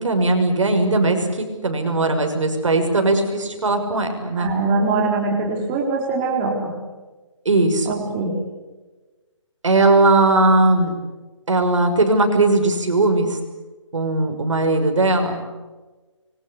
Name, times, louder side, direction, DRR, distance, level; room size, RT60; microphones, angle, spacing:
voice 1, 0.0-4.5 7.4-7.9 9.6-10.9 11.5-13.4 13.9-15.4, right 2 dB, 70° right, 5 dB, 6.3 m, -18 dB
voice 2, 4.4-6.7 7.9-8.3, right 3 dB, 15° right, -1 dB, 4.2 m, -22 dB
26.5 x 24.0 x 8.2 m, 1.2 s
hypercardioid pair, 165°, 16 cm